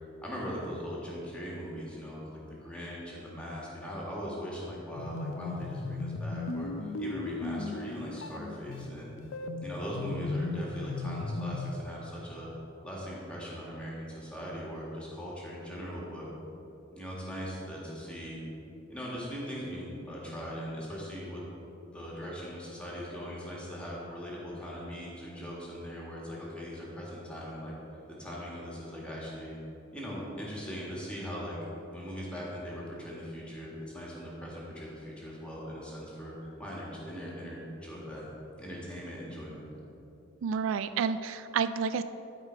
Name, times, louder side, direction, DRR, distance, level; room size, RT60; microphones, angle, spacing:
voice 1, 0.2-9.1 9.6-12.5 12.8-16.3 16.9-18.4 18.9-21.4 21.9-27.7 28.2-29.6 29.9-31.6 31.9-38.3 38.6-39.7, equal, 5° left, -5 dB, 1.8 m, -40 dB
sound 1, 4.9-11.8, left 2 dB, 80° left, 0.5 m, -36 dB
voice 2, 40.4-42.0, right 6 dB, 90° right, 12 dB, 0.3 m, -30 dB
11.5 x 5.0 x 4.6 m, 2.9 s
head